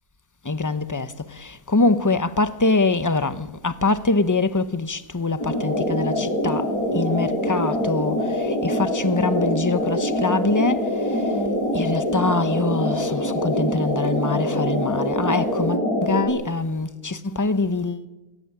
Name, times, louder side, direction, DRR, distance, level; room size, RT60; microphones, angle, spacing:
voice 1, 0.4-11.3 11.7-18.1, left 3 dB, 15° left, 0.8 m, -24 dB
sound 1, 5.4-16.3, equal, 85° left, 8.8 m, -24 dB
22.5 x 17.0 x 9.9 m
omnidirectional pair, 1.5 m